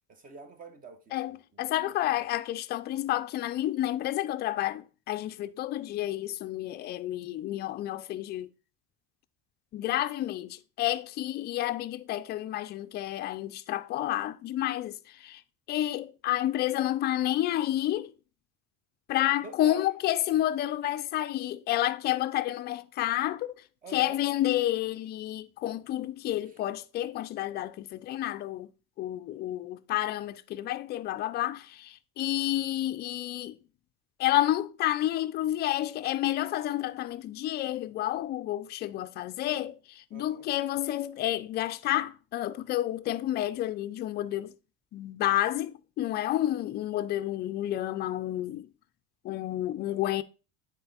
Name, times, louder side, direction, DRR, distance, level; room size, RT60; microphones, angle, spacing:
voice 1, 0.1-2.2 9.8-10.0 19.4-19.9 23.8-24.2 26.4-26.6 40.1-40.5 49.8-50.1, right 3 dB, 25° right, 0.9 m, -48 dB
voice 2, 1.1-8.5 9.7-15.4 15.7-18.1 19.1-23.5 23.9-28.7 29.0-33.6 34.2-44.5 44.9-48.7 49.2-50.2, left 13 dB, 30° left, 0.4 m, -30 dB
9.4 x 4.3 x 3.9 m
cardioid pair, 150°, 32 cm